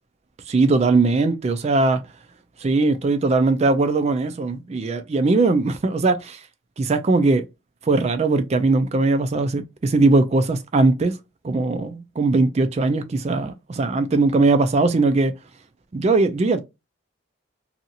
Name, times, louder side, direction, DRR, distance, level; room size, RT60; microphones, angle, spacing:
voice 1, 0.5-2.0 2.6-6.4 6.8-7.4 7.9-11.1 11.4-15.3 15.9-16.6, right 3 dB, 30° right, 0.3 m, -20 dB
2.7 x 2.4 x 2.7 m
head